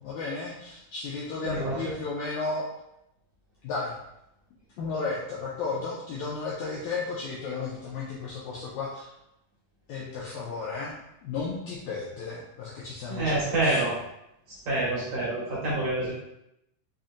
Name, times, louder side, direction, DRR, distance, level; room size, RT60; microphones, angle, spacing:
voice 1, 0.0-2.7 3.6-3.9 4.8-9.1 9.9-13.9, left 4 dB, 85° left, -5 dB, 1.6 m, -34 dB
voice 2, 1.4-1.8 13.1-13.9 14.5-16.1, right 2 dB, 60° right, -8 dB, 1.8 m, -27 dB
5.4 x 2.5 x 2.5 m, 0.83 s
omnidirectional pair, 3.8 m